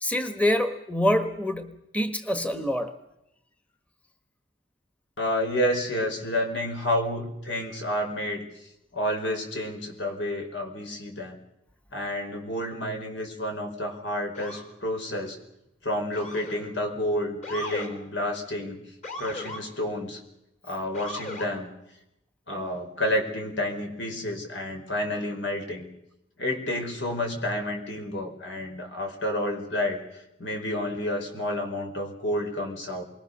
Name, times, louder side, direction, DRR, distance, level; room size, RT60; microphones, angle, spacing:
voice 1, 0.0-2.9, left 1 dB, 10° left, 7 dB, 1.3 m, -26 dB
voice 2, 5.2-8.5 8.9-11.4 11.9-15.4 15.8-18.8 19.2-20.2 20.6-21.7 22.5-25.9 26.4-33.0, left 1 dB, 80° left, 3 dB, 4.8 m, -30 dB
Motor vehicle (road) / Siren, 14.3-14.7 16.1-16.7 17.4-17.9 19.0-19.6 20.9-21.5, left 2 dB, 40° left, 4.4 m, -37 dB
27.5 x 22.5 x 6.7 m, 0.86 s
head